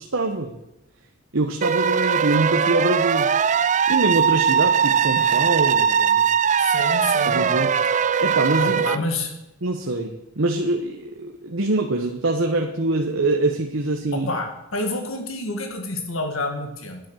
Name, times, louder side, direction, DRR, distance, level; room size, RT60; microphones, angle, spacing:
voice 1, 0.1-0.6 1.3-3.3 3.9-6.3 7.2-7.7 8.2-8.8 9.6-14.3, right 2 dB, 65° right, 3 dB, 1.1 m, -24 dB
sound 1, 1.6-9.0, right 7 dB, 35° right, 0.4 m, -20 dB
voice 2, 6.6-7.5 8.6-9.3 14.3-14.5 14.7-17.0, left 2 dB, 70° left, 4 dB, 2.1 m, -28 dB
10.5 x 10.0 x 6.4 m, 0.90 s
head